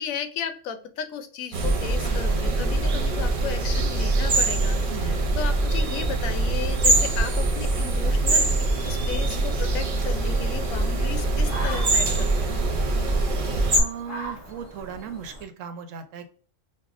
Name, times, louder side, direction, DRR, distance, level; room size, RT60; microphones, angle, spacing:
voice 1, 0.0-8.5 8.9-12.6, left 7 dB, 85° left, 8 dB, 1.0 m, -34 dB
sound 1, 1.5-13.8, right 2 dB, 50° right, 0.8 m, -23 dB
voice 2, 4.9-5.3 13.8-16.3, right 7 dB, 75° right, 8 dB, 0.9 m, -37 dB
sound 2, 10.0-15.4, equal, 15° left, 0.6 m, -41 dB
5.5 x 2.1 x 2.4 m, 0.41 s
omnidirectional pair, 1.4 m